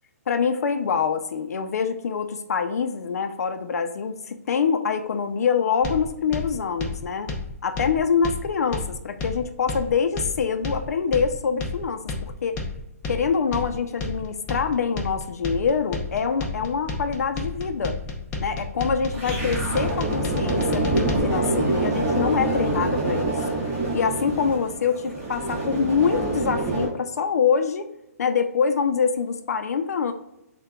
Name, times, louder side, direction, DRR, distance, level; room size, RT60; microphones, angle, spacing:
voice 1, 0.3-7.3 7.6-12.5 13.1-18.0 18.4-23.3 23.9-27.9 28.2-30.1, left 6 dB, 75° left, 8 dB, 0.4 m, -25 dB
sound 1, 5.8-21.2, left 3 dB, 15° left, 0.5 m, -31 dB
sound 2, 19.1-26.9, right 2 dB, 20° right, 1.1 m, -26 dB
6.4 x 2.2 x 2.2 m, 0.87 s
hypercardioid pair, 155°, 9 cm